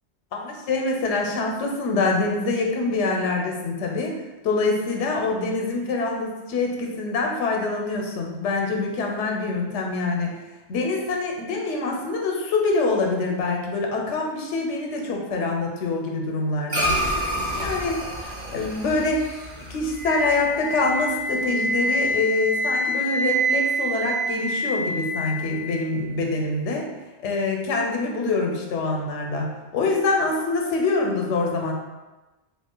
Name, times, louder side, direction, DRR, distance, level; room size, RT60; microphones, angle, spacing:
voice 1, 0.3-4.2 4.4-10.3 10.7-17.0 17.6-18.0 18.5-19.3 19.7-26.9 27.2-31.7, left 3 dB, 85° left, 1 dB, 0.9 m, -25 dB
sound 1, 16.7-21.3, equal, 50° right, 0.5 m, -29 dB
Wind instrument woodwind instrument, 19.9-25.9, equal, 90° right, 1.1 m, -26 dB
2.9 x 2.4 x 3.7 m, 1.1 s
omnidirectional pair, 1.2 m